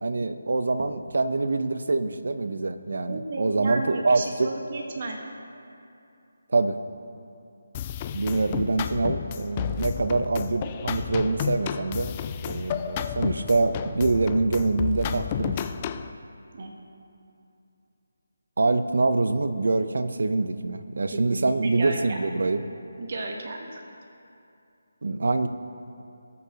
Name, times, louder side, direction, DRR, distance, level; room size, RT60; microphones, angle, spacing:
voice 1, 0.0-4.5 6.5-6.8 8.1-12.2 12.4-15.7 18.6-22.6 25.0-25.5, right 3 dB, 70° right, 11 dB, 0.6 m, -25 dB
voice 2, 3.1-5.2 12.5-12.6 16.5-16.8 21.1-22.2 23.0-23.8, right 2 dB, 50° right, 1 dB, 1.3 m, -34 dB
sound 1, 7.7-16.1, left 9 dB, 25° left, 0.3 m, -32 dB
18.5 x 6.8 x 2.9 m, 2.6 s
figure-of-eight pair, 160°, 0 cm